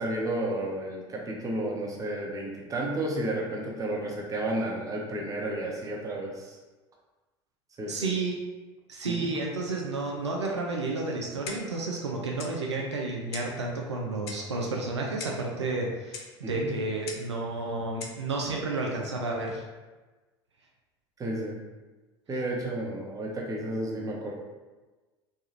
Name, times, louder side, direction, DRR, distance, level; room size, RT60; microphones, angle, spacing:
voice 1, 0.0-6.6 7.8-8.1 9.0-9.3 16.5-16.7 21.2-21.6 22.3-24.3, right 1 dB, 25° right, -3 dB, 0.8 m, -32 dB
voice 2, 7.9-8.3 8.9-19.6, right 3 dB, 90° right, -1 dB, 0.4 m, -31 dB
Clock, 11.5-11.8 12.4-12.6 13.3-13.6 14.3-14.5 15.2-15.5 16.1-16.3 17.1-17.3 18.0-18.2, left 4 dB, 65° left, 0.5 m, -40 dB
3.1 x 2.3 x 2.8 m, 1.2 s
figure-of-eight pair, 75°, 14 cm